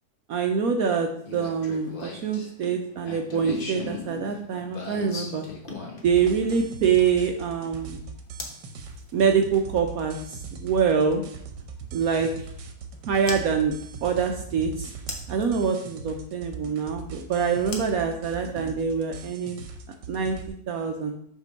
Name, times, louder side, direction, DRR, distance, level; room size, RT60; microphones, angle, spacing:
voice 1, 0.3-5.4 6.0-8.0 9.1-11.2 11.9-12.3 13.1-13.7 14.0-14.9 15.3-19.6 20.1-20.4 20.7-21.1, right 6 dB, 65° right, 4 dB, 1.0 m, -25 dB
sound 1, 1.2-7.3 8.4-8.6 10.5-10.6 13.3-13.4 15.1-15.5 17.7-18.7, left 2 dB, 35° left, 1.1 m, -37 dB
sound 2, 6.0-20.5, right 4 dB, 80° right, 1.5 m, -41 dB
7.5 x 3.7 x 5.3 m, 0.66 s
omnidirectional pair, 1.8 m